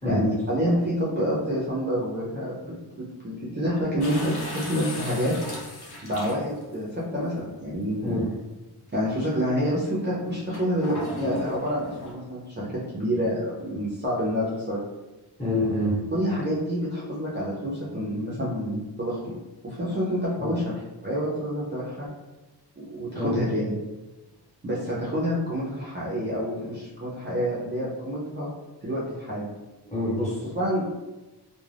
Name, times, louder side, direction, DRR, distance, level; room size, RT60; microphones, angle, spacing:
voice 1, 0.1-5.3 6.0-8.2 8.9-14.8 16.1-19.3 19.6-22.1 22.8-23.7 24.6-28.5 28.8-29.5 30.5-30.8, equal, 25° right, -7 dB, 0.5 m, -28 dB
sound 1, 4.0-6.7 7.6-7.7 10.5-12.1, left 1 dB, 65° left, 0.7 m, -36 dB
voice 2, 15.4-15.9 20.4-20.5 23.1-23.4 29.8-30.4, left 1 dB, 15° left, -7 dB, 1.0 m, -26 dB
2.4 x 2.1 x 3.2 m, 1.1 s
wide cardioid pair, 130°, 41 cm